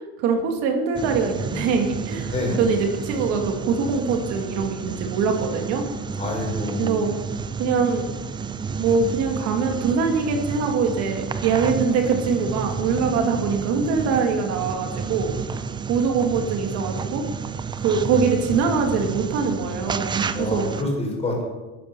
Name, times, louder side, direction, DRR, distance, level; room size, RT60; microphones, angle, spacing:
voice 1, 0.2-5.8 6.8-7.1 7.6-8.1 8.8-15.3 15.9-17.3 17.8-20.7, right 5 dB, 60° right, 4 dB, 2.1 m, -23 dB
sound 1, 0.9-20.8, right 5 dB, 15° right, 0.5 m, -31 dB
voice 2, 6.2-7.0 20.3-21.4, left 2 dB, 20° left, 1 dB, 4.2 m, -27 dB
11.0 x 9.3 x 6.8 m, 1.2 s
supercardioid pair, 135°, 30 cm